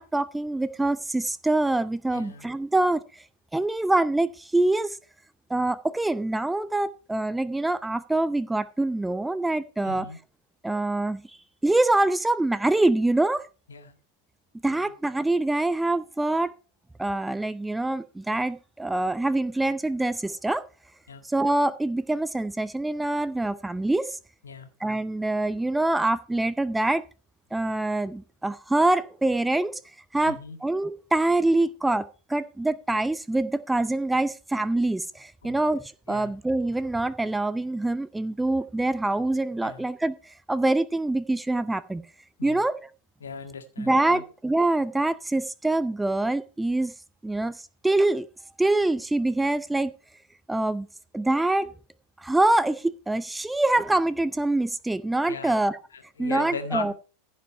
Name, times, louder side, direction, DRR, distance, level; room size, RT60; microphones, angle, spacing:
voice 1, 0.0-3.2 3.5-5.0 5.5-10.1 10.6-11.2 11.6-13.5 14.6-16.5 17.0-20.6 21.2-24.2 24.8-27.0 27.5-29.8 30.1-42.0 42.4-42.9 43.8-46.9 47.2-48.3 48.6-49.9 50.5-50.9 51.1-51.7 52.2-55.8 56.2-56.9, right 2 dB, 5° right, 16 dB, 0.6 m, -25 dB
voice 2, 2.1-2.5 9.8-10.2 13.7-14.0 14.7-14.9 21.1-21.2 24.4-24.7 30.3-30.6 35.4-35.6 36.1-36.3 39.6-39.8 42.4-42.6 43.2-44.2 55.2-55.6 55.9-56.9, left 5 dB, 70° left, 6 dB, 1.8 m, -38 dB
15.0 x 5.4 x 5.5 m, 0.35 s
figure-of-eight pair, 90°, 0 cm